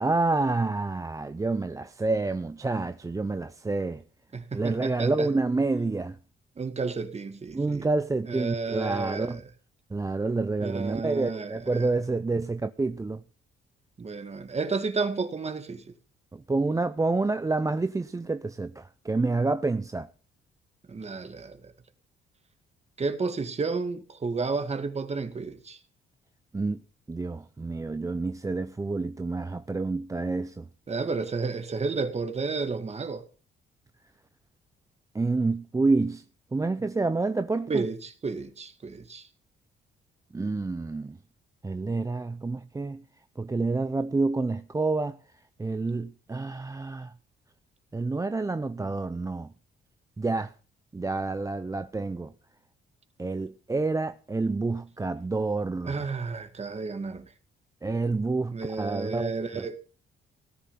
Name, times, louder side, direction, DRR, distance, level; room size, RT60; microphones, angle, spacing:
voice 1, 0.0-4.0 4.5-6.2 7.5-9.4 9.9-13.2 16.3-20.1 26.5-26.8 27.1-30.6 35.1-36.2 36.5-37.8 40.3-41.2 41.6-43.0 43.4-45.2 45.6-47.1 47.9-49.5 50.2-50.5 50.9-52.3 53.2-56.0 57.8-59.7, right 3 dB, 15° right, 0.6 m, -28 dB
voice 2, 4.3-5.3 6.6-7.9 8.3-9.4 10.6-11.9 14.0-15.8 20.9-21.6 23.0-25.8 30.9-33.2 37.7-39.2 55.8-57.3 58.5-59.8, right 4 dB, 30° right, 2.1 m, -32 dB
17.5 x 10.0 x 5.8 m
cardioid pair, 90°, 20 cm